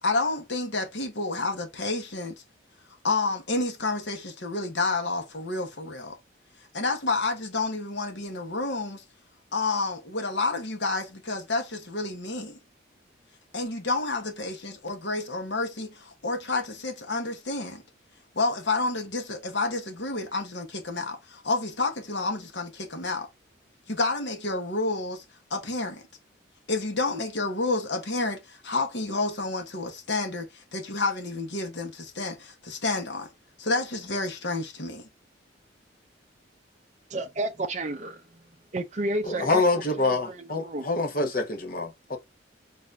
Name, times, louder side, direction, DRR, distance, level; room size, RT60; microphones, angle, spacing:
voice 1, 0.0-2.3 3.0-6.2 6.7-9.0 9.5-12.6 13.5-17.8 18.3-23.3 23.9-25.2 25.5-26.0 26.7-33.3 33.6-35.1, left 3 dB, 65° left, 1.2 m, -29 dB
voice 2, 37.1-38.2 38.7-39.8 40.6-40.8, right 1 dB, 35° right, 0.5 m, -30 dB
voice 3, 39.2-42.2, left 3 dB, 45° left, 1.0 m, -26 dB
4.0 x 2.6 x 3.2 m
head